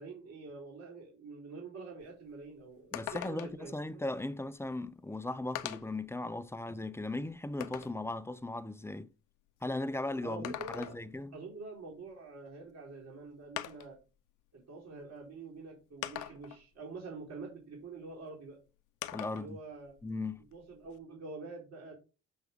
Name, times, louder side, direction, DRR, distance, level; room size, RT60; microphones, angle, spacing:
voice 1, 0.0-3.7 10.2-11.0 11.3-14.0 14.5-18.6 19.3-19.9 20.5-21.9, right 3 dB, 60° right, 4.1 m, -46 dB
sound 1, 2.0-2.1 2.4-2.5 2.9-3.7 4.7-4.8 5.6-6.0 6.6-8.0 10.2-11.2 12.7-12.8 13.6-14.0 15.0-15.1 16.0-16.6 19.0-19.5 19.9-21.0, left 13 dB, 85° left, 0.7 m, -42 dB
voice 2, 2.9-9.1 9.6-11.3 19.1-19.6 20.0-20.4, left 2 dB, 10° left, 0.5 m, -37 dB
7.1 x 5.9 x 3.6 m
cardioid pair, 90°, 30 cm